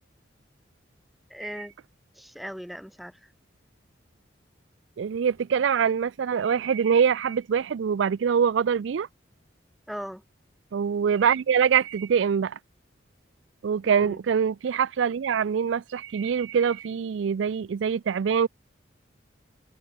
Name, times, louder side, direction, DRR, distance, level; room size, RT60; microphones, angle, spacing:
voice 1, 1.3-1.7 2.1-3.3 9.9-10.2 13.8-14.2, equal, ahead, 1.9 m, -38 dB
voice 2, 5.0-9.1 10.7-12.6 13.6-18.5, right 7 dB, 75° right, 0.4 m, -24 dB
head